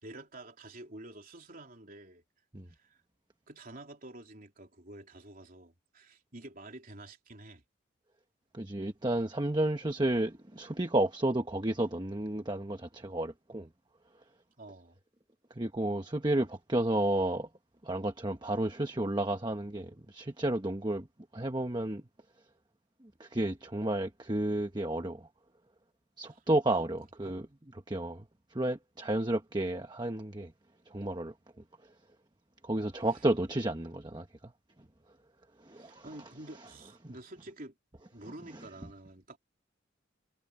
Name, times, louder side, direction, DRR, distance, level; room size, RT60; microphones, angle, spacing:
voice 1, 0.0-2.2 2.7-3.0 3.5-7.6 14.6-15.0 26.7-26.9 27.2-27.4 35.7-37.8 38.1-39.4, right 1 dB, 45° right, 3.6 m, -49 dB
voice 2, 8.5-13.7 15.5-17.5 17.8-21.1 21.3-22.0 23.0-25.3 26.2-27.5 27.9-28.2 28.5-30.5 30.9-31.3 32.6-34.5 35.6-36.1, right 1 dB, 20° right, 1.2 m, -31 dB
head